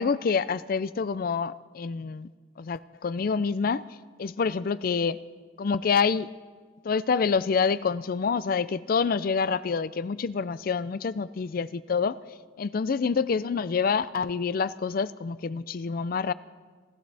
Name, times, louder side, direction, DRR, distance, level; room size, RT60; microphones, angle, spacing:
voice 1, 0.0-2.3 2.6-3.8 4.2-5.2 5.6-6.3 6.8-12.2 12.6-16.3, left 5 dB, 50° left, 16 dB, 0.4 m, -27 dB
29.0 x 14.0 x 3.4 m, 1.4 s
head